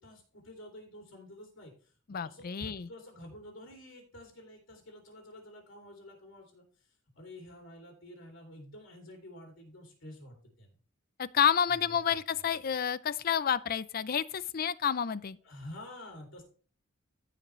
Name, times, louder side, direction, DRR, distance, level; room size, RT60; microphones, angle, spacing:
voice 1, 0.0-10.8 11.7-12.2 15.4-16.4, left 1 dB, 70° left, 2.8 m, -49 dB
voice 2, 2.1-2.9 11.2-15.4, left 8 dB, 45° left, 0.4 m, -29 dB
15.0 x 5.1 x 3.2 m
head